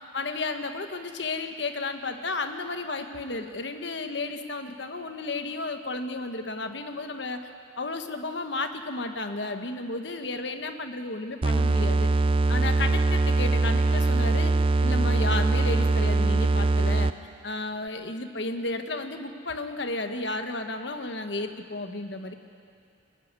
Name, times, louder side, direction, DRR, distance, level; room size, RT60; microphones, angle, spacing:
voice 1, 0.0-7.5 7.8-12.1 12.5-14.5 14.8-17.1 17.4-22.3, left 2 dB, 65° left, 7 dB, 1.3 m, -33 dB
sound 1, 11.4-17.3, right 3 dB, 30° right, 0.4 m, -22 dB
22.5 x 12.5 x 9.6 m, 2.4 s
head